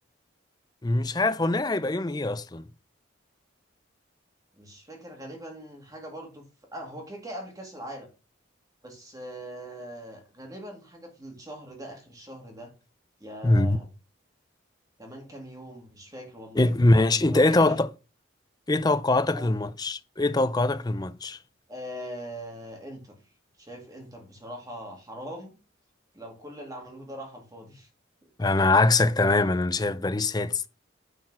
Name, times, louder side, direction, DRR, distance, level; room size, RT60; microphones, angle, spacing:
voice 1, 0.8-2.6 13.4-13.8 16.6-17.9 18.7-21.4 28.4-30.7, left 2 dB, 20° left, 0.5 m, -23 dB
voice 2, 4.6-6.4 6.7-8.1 8.8-12.7 13.2-13.9 15.0-16.7 17.2-17.8 19.3-19.5 21.7-23.2 23.6-25.6 26.1-27.9 28.2-28.3, equal, 15° right, 2.0 m, -41 dB
9.7 x 4.5 x 6.2 m
head